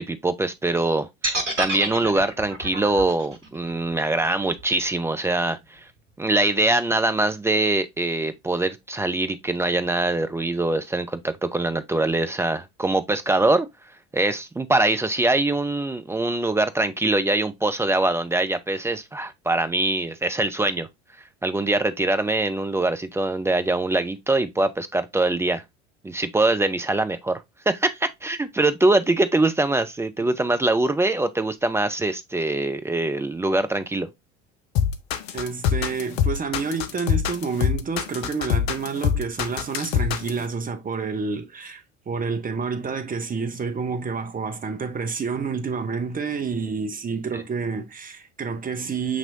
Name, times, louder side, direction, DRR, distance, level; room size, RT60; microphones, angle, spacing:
voice 1, 0.0-5.9 6.2-13.7 14.1-20.9 21.2-25.6 26.0-34.1 47.3-47.4, right 2 dB, 10° right, 0.3 m, -23 dB
sound 1, 1.2-5.3, right 1 dB, 85° right, 1.0 m, -29 dB
sound 2, 34.8-40.4, left 8 dB, 60° left, 0.7 m, -24 dB
voice 2, 35.3-49.2, right 5 dB, 25° right, 0.9 m, -29 dB
7.0 x 3.0 x 2.5 m
figure-of-eight pair, 65°, 35 cm